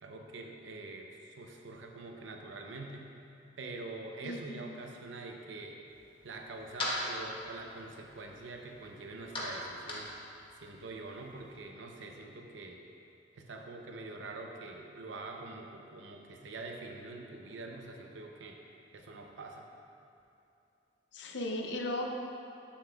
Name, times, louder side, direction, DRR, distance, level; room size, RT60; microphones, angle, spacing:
voice 1, 0.0-3.0 3.6-5.8 6.2-10.1 10.6-12.8 13.4-18.6 18.9-19.7, right 3 dB, 85° right, 2 dB, 0.6 m, -45 dB
voice 2, 4.2-4.6 21.1-22.1, left 1 dB, 70° left, 2 dB, 0.6 m, -36 dB
sound 1, 5.8-11.6, left 1 dB, 30° left, 0.9 m, -42 dB
7.2 x 6.8 x 2.3 m, 2.7 s
head